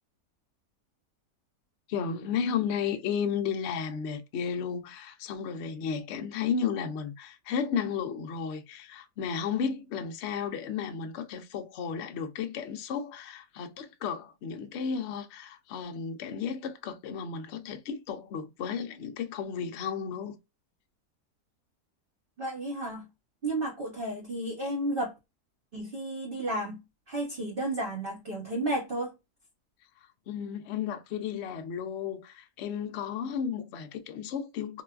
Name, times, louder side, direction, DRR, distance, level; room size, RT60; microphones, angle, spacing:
voice 1, 1.9-20.4 30.3-34.8, left 7 dB, 70° left, 0.6 m, -33 dB
voice 2, 22.4-23.1 23.4-25.1 25.7-26.8 27.1-29.1, right 1 dB, 45° right, 0.8 m, -32 dB
3.8 x 2.3 x 2.3 m
omnidirectional pair, 1.7 m